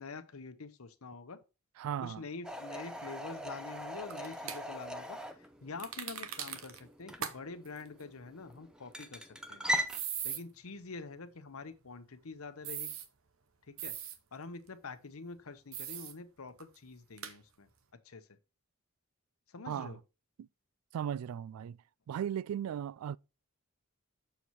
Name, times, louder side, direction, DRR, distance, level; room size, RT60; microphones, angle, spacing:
voice 1, 0.0-1.4 2.0-9.6 10.2-12.9 13.7-13.9 14.3-17.7 18.0-18.3 19.5-20.0, left 4 dB, 80° left, 0.9 m, -46 dB
voice 2, 1.8-2.2 19.7-20.0 20.4-20.5 20.9-21.8 22.1-23.2, right 9 dB, 90° right, 0.3 m, -36 dB
sound 1, 2.4-10.0, equal, 5° right, 0.6 m, -40 dB
sound 2, 4.1-4.6 5.8-6.8 7.2-7.3 7.6-7.8 9.9-10.4 12.6-13.1 13.8-14.2 15.7-16.1 16.6-16.7 17.2-17.3, right 9 dB, 70° right, 0.9 m, -39 dB
7.0 x 4.6 x 4.1 m
head